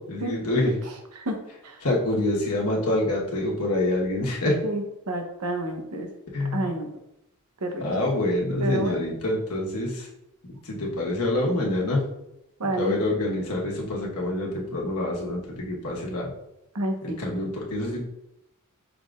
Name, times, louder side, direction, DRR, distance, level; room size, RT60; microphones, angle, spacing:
voice 1, 0.1-0.7 1.8-4.6 6.3-6.7 7.8-10.1 10.6-12.0 12.8-16.3 17.0-18.0, left 1 dB, 85° left, -3 dB, 1.3 m, -26 dB
voice 2, 4.6-6.1 6.4-7.0 7.6-7.8 8.6-8.9 12.6-13.0 16.7-17.2, right 1 dB, 85° right, 3 dB, 0.9 m, -29 dB
5.8 x 3.7 x 2.5 m, 0.84 s
head